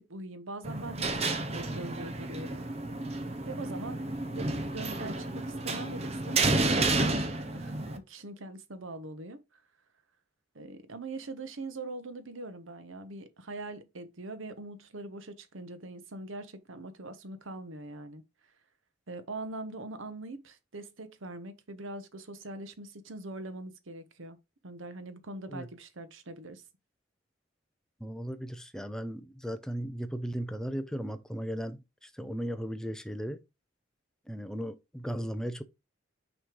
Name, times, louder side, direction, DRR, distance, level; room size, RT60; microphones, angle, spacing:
voice 1, 0.0-2.6 3.1-3.2 3.5-9.6 10.5-18.2 19.1-24.4 24.6-26.6, right 2 dB, 85° right, 1.0 m, -42 dB
sound 1, 0.6-8.0, right 2 dB, 30° right, 0.8 m, -31 dB
voice 2, 28.0-33.4 34.3-35.6, equal, 5° left, 0.5 m, -36 dB
6.1 x 3.2 x 5.2 m
head